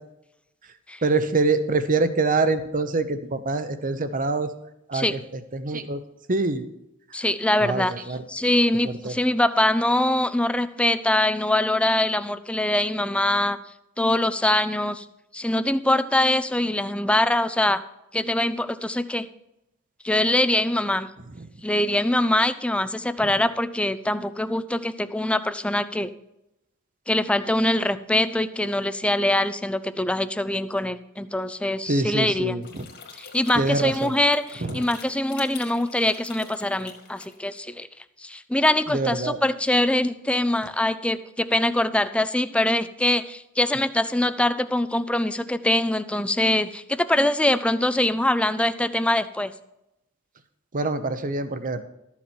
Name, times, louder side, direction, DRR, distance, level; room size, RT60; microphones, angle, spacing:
voice 1, 1.0-4.5 4.9-6.0 6.3-6.7 7.2-7.3 7.6-8.2 8.8-9.2 21.4-21.5 23.2-23.3 31.9-32.9 33.5-34.1 34.6-34.8 38.9-39.4 50.7-51.8, right 3 dB, 40° right, 11 dB, 0.8 m, -25 dB
voice 2, 7.1-7.9 8.3-13.6 14.0-15.0 15.3-17.8 18.1-19.3 20.0-21.1 21.6-26.1 27.1-32.6 33.2-37.9 38.2-49.5, left 1 dB, 5° left, 12 dB, 0.4 m, -23 dB
sound 1, 32.6-37.6, left 5 dB, 55° left, 2.1 m, -44 dB
13.0 x 7.3 x 4.5 m, 0.87 s
head